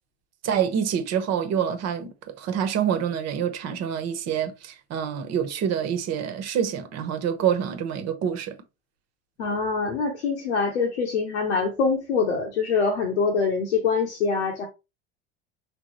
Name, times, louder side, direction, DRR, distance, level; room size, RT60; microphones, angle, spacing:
voice 1, 0.4-8.6, right 8 dB, 50° right, 1.2 m, -26 dB
voice 2, 9.4-14.7, left 5 dB, 85° left, 1.0 m, -24 dB
5.2 x 3.4 x 3.0 m
hypercardioid pair, 75°, 33 cm